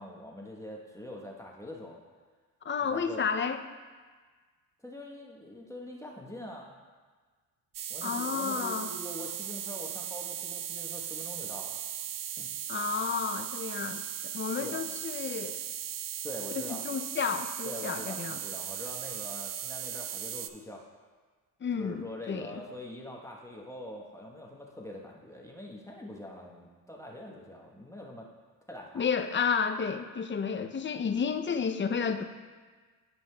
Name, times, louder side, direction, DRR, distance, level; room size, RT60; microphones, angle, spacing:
voice 1, 0.0-2.0 2.9-3.3 4.8-6.7 7.9-11.8 12.4-12.5 14.6-14.8 16.2-16.8 17.6-20.8 21.7-28.3 28.7-29.1, left 1 dB, 5° left, -2 dB, 1.0 m, -44 dB
voice 2, 2.6-3.6 8.0-8.9 12.7-15.6 16.5-18.4 21.6-22.6 28.9-32.2, left 6 dB, 30° left, 8 dB, 0.5 m, -31 dB
sound 1, 7.7-20.5, right 10 dB, 50° right, 0.5 m, -37 dB
12.5 x 5.5 x 2.2 m, 1.5 s
cardioid pair, 75°, 42 cm